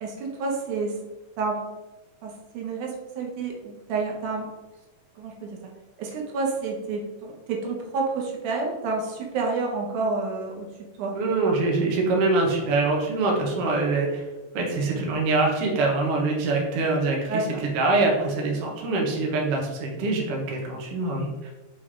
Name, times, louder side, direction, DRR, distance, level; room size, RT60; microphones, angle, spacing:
voice 1, 0.0-1.0 1.4-1.6 2.2-4.5 5.2-5.6 6.0-10.7 11.0-11.2 17.3-17.6, right 3 dB, 80° right, 0 dB, 2.4 m, -29 dB
voice 2, 11.1-14.2 14.5-17.4 17.7-21.5, right 3 dB, 60° right, -1 dB, 1.8 m, -24 dB
6.6 x 4.0 x 3.6 m, 1.1 s
omnidirectional pair, 3.6 m